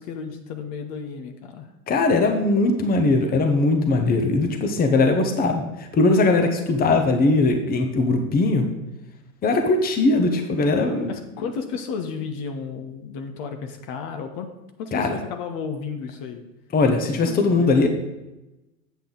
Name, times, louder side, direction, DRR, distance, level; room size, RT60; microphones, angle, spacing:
voice 1, 0.0-1.7 11.1-14.5 14.8-16.4 17.0-17.9, left 5 dB, 45° left, 6 dB, 1.1 m, -33 dB
voice 2, 1.9-8.6 9.4-11.1 14.9-15.2 16.7-17.9, left 3 dB, 20° left, 5 dB, 1.0 m, -20 dB
8.2 x 6.7 x 3.9 m, 1.0 s
hypercardioid pair, 105°, 42 cm